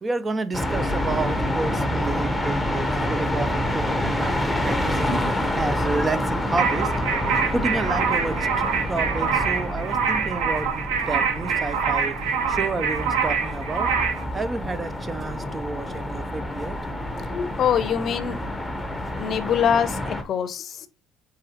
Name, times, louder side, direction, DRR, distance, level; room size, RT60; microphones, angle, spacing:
voice 1, 0.0-8.5 8.8-13.9 14.3-16.8, right 3 dB, 25° right, 0.5 m, -30 dB
sound 1, 0.5-20.2, left 1 dB, 5° left, 1.0 m, -27 dB
sound 2, 6.6-14.2, right 6 dB, 80° right, 0.8 m, -25 dB
voice 2, 17.3-18.4 19.2-20.9, left 8 dB, 55° left, 0.6 m, -24 dB
4.6 x 3.8 x 3.0 m
supercardioid pair, 80°, 0 cm